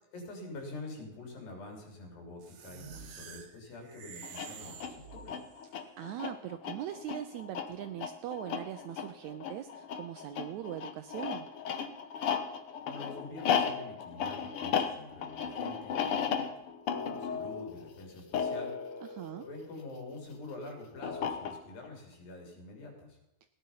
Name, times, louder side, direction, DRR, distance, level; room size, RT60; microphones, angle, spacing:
voice 1, 0.1-5.4 12.8-16.5 17.0-18.7 19.4-23.2, left 2 dB, 85° left, 2 dB, 5.2 m, -46 dB
sound 1, 2.4-5.7, right 7 dB, 60° right, 2.0 m, -49 dB
sound 2, 4.2-20.0 21.0-21.9, left 7 dB, 65° left, 1.4 m, -35 dB
voice 2, 6.0-11.5 19.0-19.4, right 11 dB, 80° right, 10 dB, 1.7 m, -41 dB
17.0 x 10.5 x 5.6 m, 0.94 s
omnidirectional pair, 4.0 m